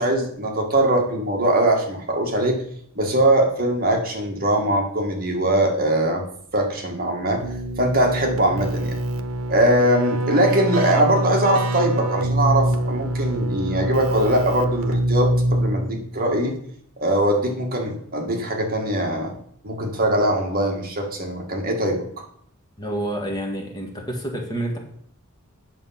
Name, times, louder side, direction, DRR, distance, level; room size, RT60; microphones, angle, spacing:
voice 1, 0.0-2.6 3.0-6.2 6.5-7.5 7.8-9.0 9.5-16.6 17.0-19.4 19.6-22.0, right 1 dB, 45° right, 1 dB, 1.8 m, -21 dB
Keyboard (musical), 7.4-16.1, right 1 dB, 75° right, 1.0 m, -24 dB
voice 2, 22.8-24.8, right 1 dB, 20° left, 0 dB, 1.8 m, -28 dB
8.8 x 6.9 x 5.8 m, 0.64 s
head